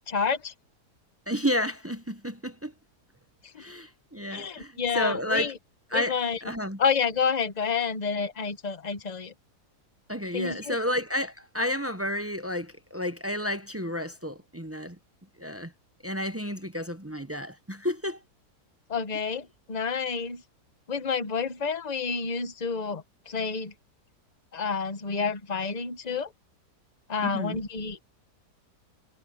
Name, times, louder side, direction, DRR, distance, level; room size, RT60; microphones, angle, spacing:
voice 1, 0.1-0.5 3.5-3.6 4.3-5.5 5.9-6.4 6.8-9.3 10.3-10.8 18.9-20.4 20.9-23.7 24.5-26.3 27.1-28.0, left 5 dB, 30° left, 1.1 m, -29 dB
voice 2, 1.3-2.7 3.6-5.5 5.9-6.8 10.1-15.0 15.4-15.7 16.0-18.2 27.2-27.6, left 1 dB, 15° right, 0.6 m, -31 dB
omnidirectional pair, 1.7 m